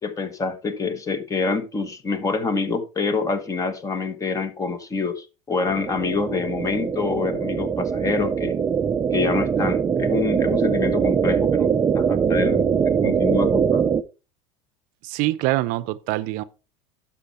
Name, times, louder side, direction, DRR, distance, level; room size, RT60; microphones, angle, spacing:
voice 1, 0.0-8.5 9.1-11.7 11.9-12.6 13.0-13.9, left 4 dB, 20° left, 1.3 m, -26 dB
sound 1, 5.7-14.0, right 7 dB, 20° right, 0.5 m, -22 dB
voice 2, 15.0-16.4, right 18 dB, 60° right, 0.6 m, -24 dB
11.5 x 5.7 x 4.2 m
supercardioid pair, 130°, 16 cm